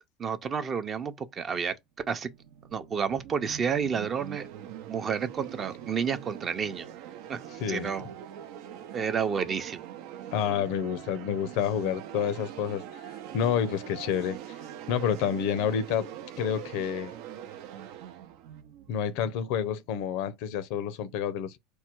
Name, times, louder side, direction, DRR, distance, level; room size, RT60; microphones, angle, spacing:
voice 1, 0.0-1.8 2.1-2.3 2.7-4.5 4.9-6.9 7.3-7.4 7.7-8.1 8.9-9.8, right 6 dB, 30° right, 0.6 m, -30 dB
sound 1, 2.0-19.9, right 10 dB, 70° right, 0.6 m, -43 dB
voice 2, 7.6-7.9 10.3-12.8 13.3-14.4 14.9-17.1 18.9-21.6, left 8 dB, 70° left, 0.6 m, -29 dB
4.4 x 2.2 x 4.5 m
supercardioid pair, 135°, 0 cm